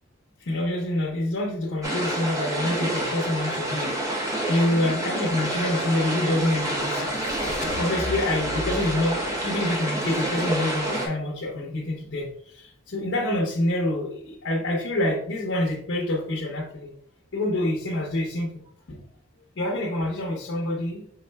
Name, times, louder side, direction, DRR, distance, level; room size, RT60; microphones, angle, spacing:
voice 1, 0.4-7.1 7.8-16.9 17.3-18.5 18.9-19.0 19.6-21.0, left 1 dB, 70° left, -2 dB, 0.7 m, -27 dB
sound 1, 1.8-11.1, right 1 dB, 15° right, 0.7 m, -28 dB
sound 2, 5.4-10.8, left 2 dB, 35° left, 0.4 m, -39 dB
5.5 x 3.5 x 2.2 m, 0.65 s
head